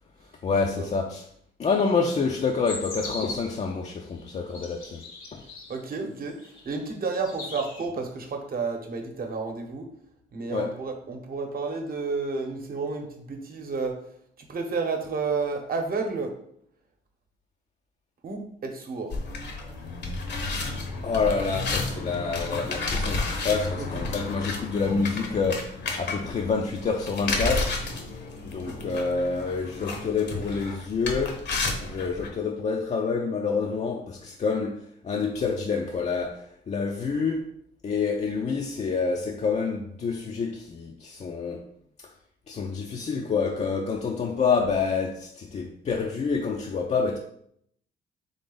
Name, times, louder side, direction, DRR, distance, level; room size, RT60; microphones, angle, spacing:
voice 1, 0.4-1.2 1.6-5.0 5.3-5.4 10.5-10.8 21.0-27.8 28.4-31.4 31.8-37.5 37.8-41.7 42.0-42.1 42.5-47.2, left 5 dB, 35° left, 0.5 m, -27 dB
sound 1, 2.7-3.6 4.3-5.8 6.4-6.8 7.1-7.9, left 2 dB, 80° left, 1.2 m, -39 dB
voice 2, 5.7-6.4 6.6-9.9 10.3-14.0 14.4-16.3 18.2-19.1 23.8-24.1 28.7-28.8, right 4 dB, 45° right, 1.0 m, -31 dB
sound 2, 19.1-32.3, left 3 dB, 60° left, 0.9 m, -32 dB
3.8 x 3.3 x 3.9 m
cardioid pair, 90°, 20 cm